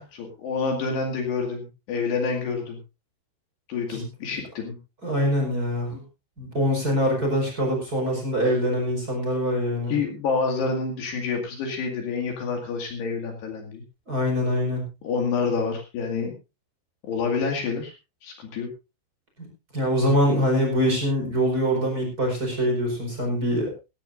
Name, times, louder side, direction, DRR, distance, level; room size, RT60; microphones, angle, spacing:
voice 1, 0.0-2.8 3.7-4.8 5.9-6.0 9.9-13.8 15.0-16.3 17.1-17.9 18.2-18.7, left 4 dB, 60° left, 3 dB, 4.0 m, -28 dB
voice 2, 5.0-5.9 6.4-9.9 14.1-14.9 19.4-19.5 19.7-23.7, equal, 20° right, 1 dB, 4.9 m, -24 dB
16.5 x 16.0 x 2.6 m, 0.28 s
omnidirectional pair, 5.7 m